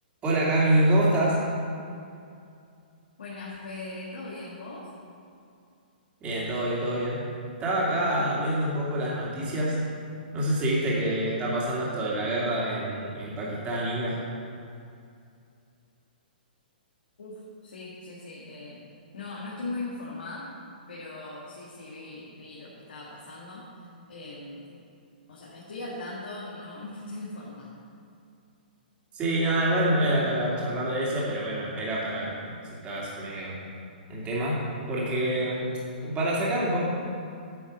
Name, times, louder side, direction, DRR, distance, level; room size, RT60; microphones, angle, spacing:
voice 1, 0.2-1.4 6.2-7.2 7.6-9.8 10.3-14.2 29.1-32.5 32.8-33.5 34.1-34.6 34.9-35.7 36.0-36.8, right 1 dB, 20° right, -6 dB, 2.6 m, -26 dB
voice 2, 3.2-4.9 17.2-18.8 19.1-20.5 20.9-23.7 24.1-24.7 25.3-27.7, left 2 dB, 75° left, -5 dB, 1.9 m, -39 dB
9.2 x 7.2 x 5.3 m, 2.5 s
hypercardioid pair, 130°, 5 cm